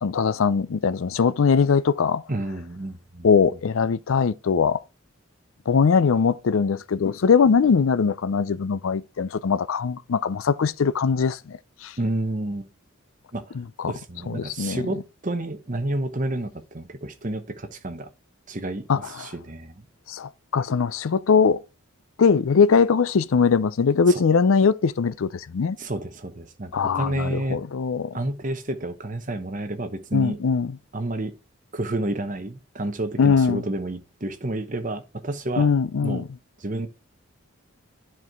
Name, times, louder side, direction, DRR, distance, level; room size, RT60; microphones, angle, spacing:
voice 1, 0.0-2.2 3.2-4.8 5.7-11.9 13.6-13.9 14.3-14.8 18.9-19.3 20.1-21.6 22.2-25.8 26.7-28.1 30.1-30.8 33.2-33.6 35.6-36.3, left 5 dB, 70° left, 0.4 m, -21 dB
voice 2, 2.3-3.3 12.0-12.7 13.3-13.5 13.9-18.1 18.5-19.8 24.1-24.2 25.8-27.6 28.1-30.4 30.9-31.3 31.7-35.7 36.0-36.2 36.6-36.9, right 1 dB, 35° right, 0.9 m, -30 dB
10.5 x 4.6 x 3.6 m
head